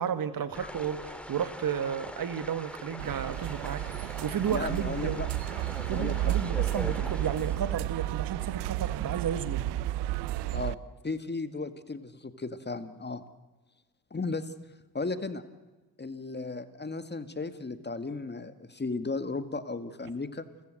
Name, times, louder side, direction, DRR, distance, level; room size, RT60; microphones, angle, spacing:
voice 1, 0.0-5.2 5.9-9.7, right 8 dB, 60° right, 12 dB, 1.9 m, -33 dB
sound 1, 0.5-7.9, equal, 5° left, 3.1 m, -42 dB
sound 2, 3.0-10.7, right 14 dB, 85° right, 0.7 m, -32 dB
voice 2, 4.5-5.3 5.9-6.3 10.5-13.2 14.1-14.5 14.9-15.4 16.0-20.5, left 3 dB, 25° left, 11 dB, 2.0 m, -35 dB
29.0 x 15.0 x 7.9 m, 1.2 s
supercardioid pair, 60°, 39 cm